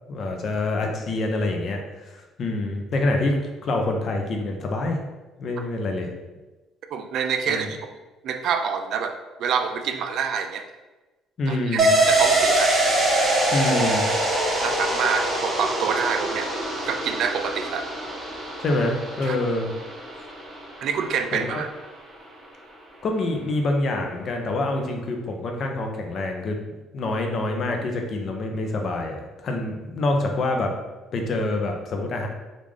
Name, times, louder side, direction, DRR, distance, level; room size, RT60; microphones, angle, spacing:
voice 1, 0.1-3.3 3.6-5.0 5.4-6.1 7.5-7.7 11.4-11.9 13.5-14.1 18.6-19.7 21.3-21.6 23.0-26.6 26.9-30.7 31.1-32.3, left 2 dB, 40° left, 2 dB, 0.5 m, -26 dB
voice 2, 6.9-7.8 8.2-10.6 11.5-12.7 14.1-14.2 14.6-16.5 16.9-17.9 19.2-19.4 20.8-21.7, right 6 dB, 55° right, 6 dB, 0.3 m, -27 dB
sound 1, 11.8-21.2 21.5-21.6, right 1 dB, 35° right, 1.0 m, -24 dB
3.6 x 2.4 x 3.2 m, 1.1 s
cardioid pair, 150°, 0 cm